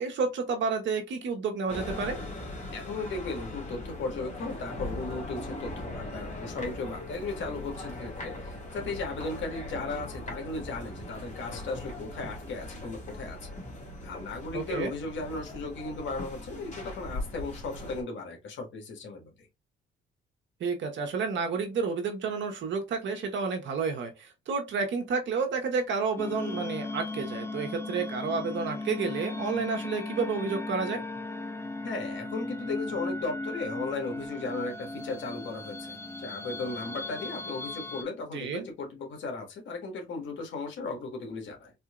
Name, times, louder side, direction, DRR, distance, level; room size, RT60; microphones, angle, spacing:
voice 1, 0.0-2.2 14.5-14.9 20.6-31.0 38.3-38.7, right 5 dB, 70° right, 1.2 m, -30 dB
sound 1, 1.7-18.0, left 1 dB, 35° left, 1.9 m, -40 dB
voice 2, 2.7-13.5 14.0-19.5 31.8-41.7, left 3 dB, 70° left, 1.5 m, -36 dB
sound 2, 26.2-38.0, left 2 dB, 15° left, 0.5 m, -37 dB
4.2 x 2.7 x 2.4 m
cardioid pair, 90°, 20 cm